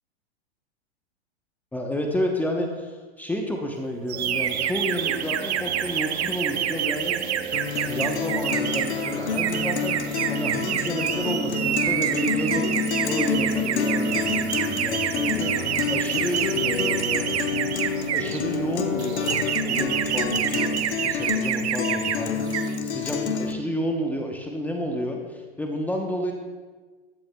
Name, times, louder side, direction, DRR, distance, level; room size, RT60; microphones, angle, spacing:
voice 1, 1.7-7.2 7.9-12.7 13.0-17.3 18.1-19.4 19.6-26.3, equal, 5° left, 1 dB, 0.9 m, -30 dB
sound 1, 4.0-21.3, right 3 dB, 85° right, 2.7 m, -38 dB
sound 2, 4.1-18.4 19.0-22.2 22.4-22.8, right 10 dB, 70° right, 0.8 m, -28 dB
Guitar, 7.5-23.5, left 5 dB, 70° left, 1.1 m, -28 dB
15.0 x 11.5 x 2.3 m, 1.4 s
hypercardioid pair, 125°, 34 cm